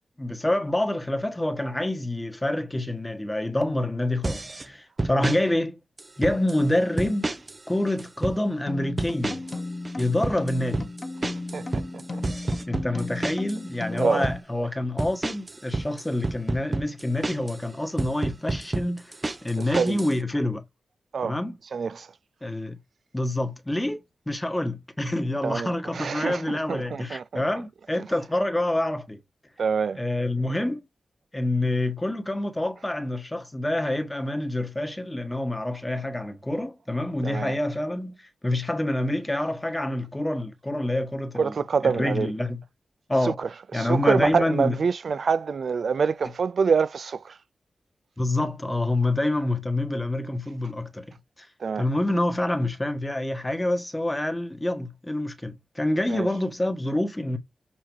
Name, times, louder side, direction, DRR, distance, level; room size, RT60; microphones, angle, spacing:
voice 1, 0.2-5.8 6.2-7.4 7.7-9.4 10.0-10.9 12.6-20.6 21.2-21.5 22.4-22.8 23.1-24.0 24.3-29.2 30.0-30.9 31.3-41.5 41.8-42.6 43.1-43.3 43.7-44.8 48.2-51.5 51.8-57.4, left 1 dB, 15° left, 1.4 m, -27 dB
sound 1, 4.2-4.7 5.0-5.4 6.0-6.6 7.0-7.6 7.9-8.4 9.0-9.6 9.8-13.6 14.0-14.4 15.0-17.6 18.0-20.1, right 2 dB, 30° right, 0.7 m, -29 dB
sound 2, 8.7-14.4, left 2 dB, 30° left, 1.5 m, -35 dB
voice 2, 11.5-12.2 12.9-13.1 13.9-14.3 14.6-14.7 19.6-20.0 21.1-22.1 25.4-27.5 27.9-28.1 29.6-30.0 37.2-37.6 41.3-42.3 43.1-47.4 51.6-51.9 56.1-56.3, right 5 dB, 65° right, 0.5 m, -26 dB
7.2 x 2.9 x 4.6 m
wide cardioid pair, 100°, 0 cm